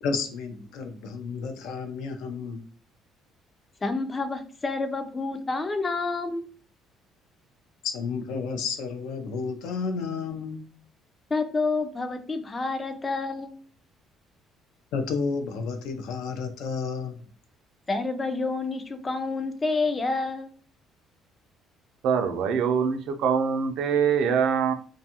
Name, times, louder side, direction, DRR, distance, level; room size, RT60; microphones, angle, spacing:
voice 1, 0.0-2.6 7.8-10.7 14.9-17.2, left 5 dB, 80° left, 7 dB, 0.5 m, -31 dB
voice 2, 3.8-6.4 11.3-13.6 17.9-20.5, left 3 dB, 20° left, 8 dB, 0.3 m, -28 dB
voice 3, 22.0-24.7, right 7 dB, 65° right, 7 dB, 0.4 m, -24 dB
2.6 x 2.3 x 2.7 m, 0.43 s
cardioid pair, 150°, 0 cm